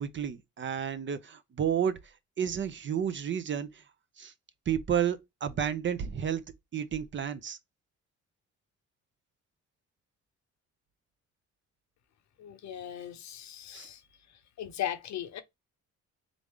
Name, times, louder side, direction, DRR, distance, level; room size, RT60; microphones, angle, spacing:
voice 1, 0.0-2.0 2.4-3.8 4.2-4.3 4.7-6.4 6.7-7.6 13.7-13.9, right 8 dB, 40° right, 0.6 m, -31 dB
voice 2, 12.4-14.0 14.6-15.4, left 11 dB, 65° left, 0.7 m, -37 dB
3.8 x 3.0 x 3.5 m
cardioid pair, 90°, 30 cm